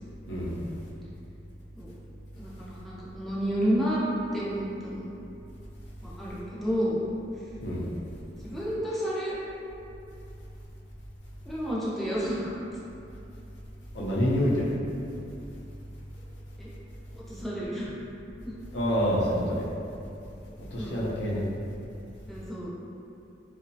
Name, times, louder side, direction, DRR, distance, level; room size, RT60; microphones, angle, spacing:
voice 1, 0.3-0.6 7.6-7.9 13.9-14.7 18.7-19.7 20.7-21.5, equal, 85° left, -6 dB, 0.5 m, -27 dB
voice 2, 2.4-4.0 4.3-5.1 6.0-7.0 8.4-9.4 11.5-12.5 16.6-16.7 17.1-17.9 18.4-18.5 20.8-21.1 22.3-22.7, equal, ahead, -9 dB, 0.4 m, -30 dB
3.0 x 2.0 x 2.6 m, 2.7 s
head